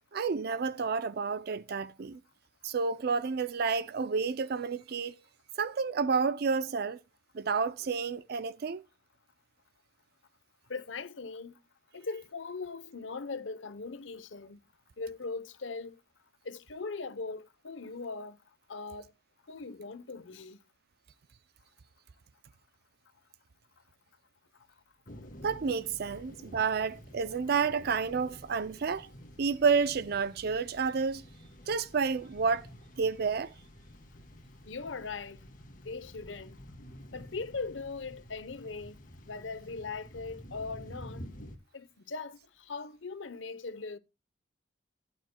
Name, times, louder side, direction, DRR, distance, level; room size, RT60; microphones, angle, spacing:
voice 1, 0.1-2.2 2.6-5.1 5.6-7.0 7.3-8.8 25.4-29.1 29.4-31.2 31.7-32.7 33.0-33.5, right 5 dB, 55° right, 0.4 m, -30 dB
voice 2, 10.7-11.6 11.9-14.6 15.0-16.0 16.4-18.4 18.7-19.1 19.5-20.6 34.7-35.4 35.8-36.6 37.1-39.0 39.2-41.3 41.7-44.0, left 4 dB, 80° left, 0.9 m, -40 dB
sound 1, 25.1-41.6, equal, 45° left, 1.8 m, -50 dB
15.5 x 9.1 x 2.2 m
head